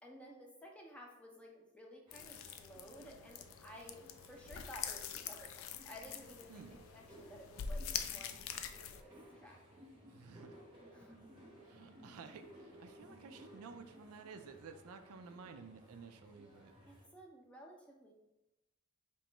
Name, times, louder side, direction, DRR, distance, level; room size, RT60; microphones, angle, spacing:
voice 1, 0.0-4.0 4.3-9.6 10.9-11.2 16.8-18.1, equal, 5° left, -1 dB, 0.5 m, -55 dB
sound 1, 2.1-9.0, left 7 dB, 65° left, 0.3 m, -45 dB
sound 2, 2.1-17.1, equal, 20° right, 0.9 m, -59 dB
voice 2, 10.1-10.6 11.6-16.7, right 5 dB, 80° right, 7 dB, 0.4 m, -53 dB
3.0 x 2.9 x 4.4 m, 0.96 s
head